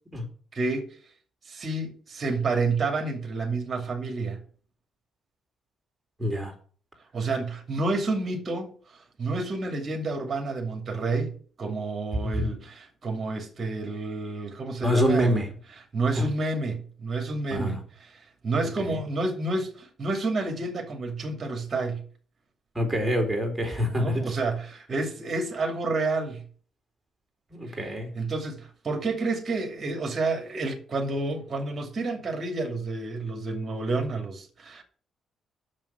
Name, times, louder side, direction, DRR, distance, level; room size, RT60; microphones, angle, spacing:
voice 1, 0.5-0.9 1.5-4.4 7.1-8.7 9.2-11.3 11.6-15.4 15.9-22.0 24.0-26.4 27.7-34.8, right 3 dB, 40° right, 2.5 m, -29 dB
voice 2, 6.2-6.5 12.4-12.5 14.8-15.5 16.2-16.3 17.5-17.8 22.7-24.2 27.5-28.1, equal, 10° right, 3.9 m, -25 dB
7.4 x 6.5 x 8.0 m
cardioid pair, 80°, 0 cm